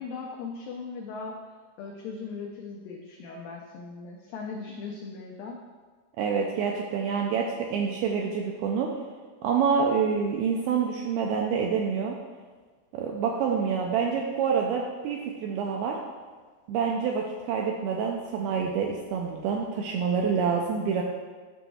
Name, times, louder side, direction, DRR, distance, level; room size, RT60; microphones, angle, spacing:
voice 1, 0.0-1.4 1.8-5.6, left 4 dB, 90° left, -1 dB, 2.0 m, -38 dB
voice 2, 6.2-8.9 9.4-12.2 12.9-16.0 16.7-21.0, right 6 dB, 85° right, 0 dB, 2.2 m, -27 dB
11.0 x 6.0 x 2.3 m, 1.4 s
omnidirectional pair, 4.9 m